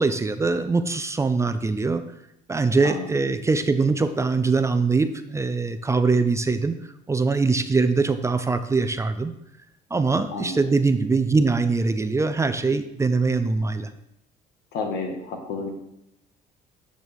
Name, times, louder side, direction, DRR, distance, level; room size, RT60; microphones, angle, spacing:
voice 1, 0.0-2.0 2.5-6.7 7.1-9.3 9.9-13.9, right 4 dB, 15° right, 10 dB, 0.5 m, -22 dB
voice 2, 10.3-10.7 14.7-15.7, left 3 dB, 80° left, 3 dB, 1.6 m, -31 dB
8.8 x 6.2 x 3.5 m, 0.81 s
cardioid pair, 110°, 17 cm